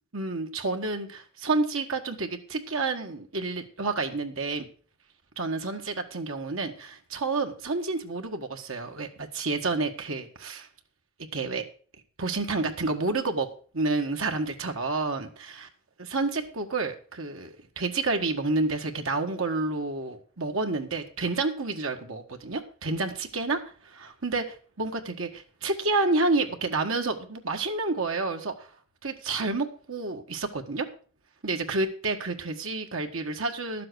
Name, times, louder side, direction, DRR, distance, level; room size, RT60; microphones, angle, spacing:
voice 1, 0.1-4.7 5.4-10.7 11.3-11.6 12.2-13.5 13.7-15.5 16.1-28.7 29.0-30.9 31.4-33.9, right 3 dB, 65° right, 4 dB, 1.6 m, -29 dB
11.5 x 7.7 x 6.2 m, 0.41 s
head